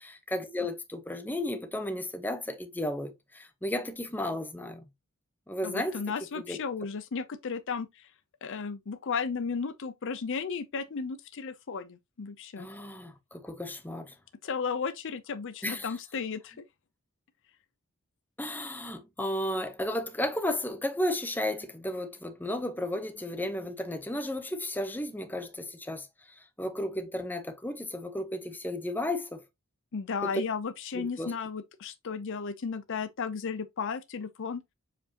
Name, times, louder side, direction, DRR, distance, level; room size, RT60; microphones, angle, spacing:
voice 1, 0.0-4.8 5.5-6.0 6.3-6.6 12.6-14.1 15.6-15.9 18.4-26.1 26.4-29.4 30.2-30.3 30.9-31.3, left 1 dB, 10° left, 0.8 m, -34 dB
voice 2, 5.6-8.1 8.4-12.7 14.4-16.6 29.9-34.6, left 5 dB, 55° left, 0.5 m, -34 dB
7.2 x 4.9 x 2.8 m
head